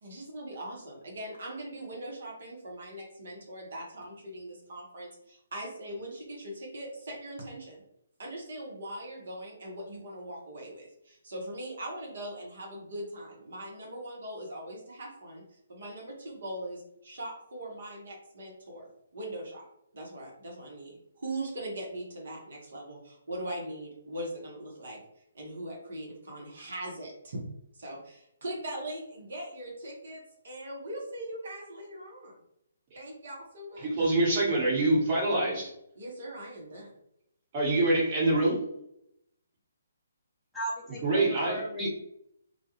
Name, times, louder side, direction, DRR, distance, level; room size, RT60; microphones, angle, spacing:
voice 1, 0.0-7.8 8.2-15.4 15.7-19.6 19.9-25.0 25.3-27.4 27.7-32.3 32.9-34.1 35.9-36.9, right 1 dB, 60° right, -2 dB, 0.9 m, -40 dB
voice 2, 33.8-35.7 37.5-38.6 41.0-41.6, right 2 dB, 35° right, -3 dB, 1.2 m, -25 dB
voice 3, 40.5-41.9, right 1 dB, ahead, -9 dB, 0.7 m, -35 dB
2.3 x 2.3 x 2.9 m, 0.77 s
figure-of-eight pair, 135°, 0 cm